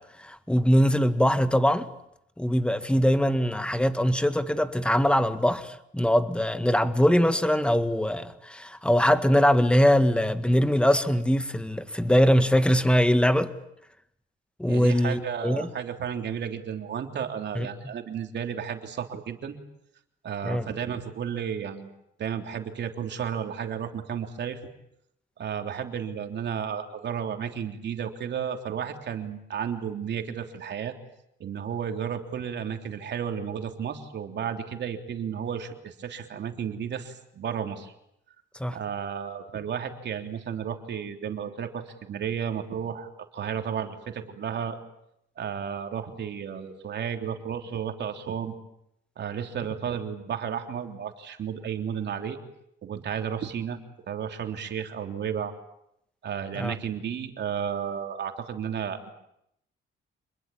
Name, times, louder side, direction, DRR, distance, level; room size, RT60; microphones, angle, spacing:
voice 1, 0.2-1.9 2.4-13.5 14.6-15.7 17.6-17.7 20.4-20.7 38.6-38.8 56.6-56.7, equal, 5° left, 10 dB, 1.9 m, -22 dB
voice 2, 14.7-19.6 20.2-21.9 22.2-24.6 25.4-30.9 31.4-37.9 38.7-44.8 45.4-48.5 49.2-52.4 52.8-53.8 54.1-55.5 56.2-59.1, right 8 dB, 60° right, 5 dB, 3.4 m, -33 dB
27.5 x 21.0 x 8.7 m, 0.78 s
cardioid pair, 90°, 20 cm